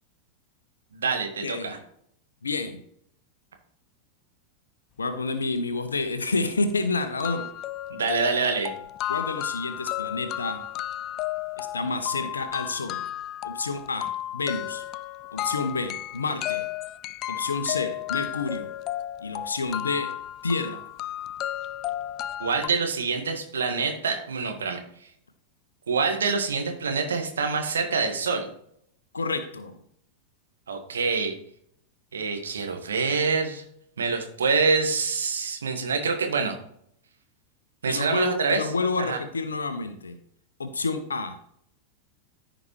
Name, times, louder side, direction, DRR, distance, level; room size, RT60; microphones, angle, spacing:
voice 1, 0.9-1.8 7.9-8.7 22.4-24.8 25.9-28.5 30.7-31.3 32.1-33.6 34.0-36.5 37.8-38.6 39.0-39.2, right 4 dB, 70° right, 4 dB, 1.6 m, -26 dB
voice 2, 1.4-1.8 2.4-2.8 5.0-7.5 9.1-10.6 11.6-13.0 13.4-14.8 15.3-16.7 17.3-18.7 19.2-20.1 20.4-20.8 29.1-29.8 37.9-40.2 40.6-41.4, left 3 dB, 75° left, 9 dB, 0.8 m, -29 dB
sound 1, 6.2-6.3 6.7-6.8 7.2-22.7, left 13 dB, 35° left, 0.3 m, -33 dB
14.5 x 5.1 x 3.1 m, 0.69 s
figure-of-eight pair, 90°, 0 cm